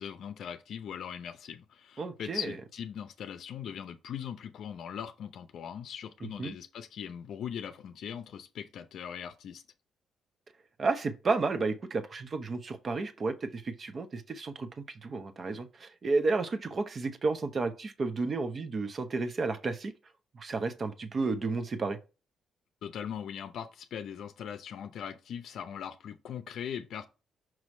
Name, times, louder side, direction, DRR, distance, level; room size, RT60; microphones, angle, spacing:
voice 1, 0.0-9.6 22.8-27.0, left 8 dB, 70° left, 0.6 m, -40 dB
voice 2, 2.0-2.5 6.4-6.5 10.8-14.7 15.0-19.9 20.4-22.0, right 3 dB, 40° right, 0.8 m, -32 dB
6.1 x 3.1 x 5.3 m
cardioid pair, 90°, 0 cm